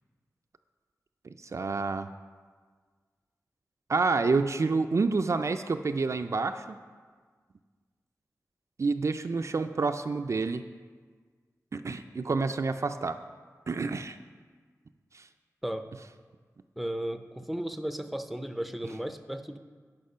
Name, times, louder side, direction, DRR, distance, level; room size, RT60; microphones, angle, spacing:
voice 1, 1.4-2.1 3.9-6.8 8.8-10.6 11.7-13.2 13.7-14.2 15.1-15.2, right 4 dB, 55° right, 8 dB, 0.4 m, -28 dB
voice 2, 16.8-19.6, right 1 dB, ahead, 8 dB, 0.5 m, -35 dB
10.5 x 5.3 x 5.4 m, 1.5 s
wide cardioid pair, 75°, 6 cm